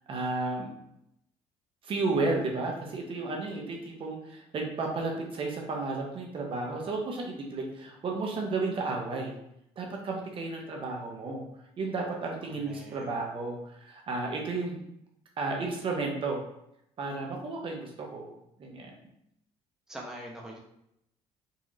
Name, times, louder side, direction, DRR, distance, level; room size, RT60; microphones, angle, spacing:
voice 1, 0.1-0.7 1.8-9.3 9.8-11.4 11.8-14.8 15.4-16.4 17.0-18.3 18.6-18.9, right 3 dB, 45° right, 0 dB, 0.8 m, -33 dB
voice 2, 12.4-13.1 19.9-20.6, right 1 dB, 5° right, -2 dB, 0.8 m, -43 dB
4.1 x 2.9 x 2.5 m, 0.78 s
cardioid pair, 100°, 12 cm